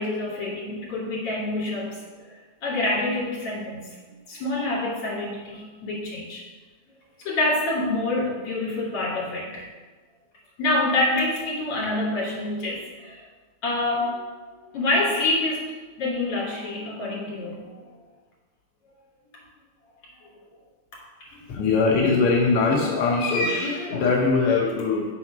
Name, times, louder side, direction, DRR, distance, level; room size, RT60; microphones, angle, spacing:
voice 1, 0.0-2.0 2.6-3.9 4.3-6.4 7.2-9.6 10.6-13.2 13.6-15.7 16.0-17.8 21.2-21.4, left 2 dB, 50° left, -5 dB, 3.1 m, -27 dB
voice 2, 21.5-25.1, left 4 dB, 70° left, -3 dB, 1.4 m, -21 dB
6.2 x 4.2 x 6.0 m, 1.3 s
omnidirectional pair, 3.5 m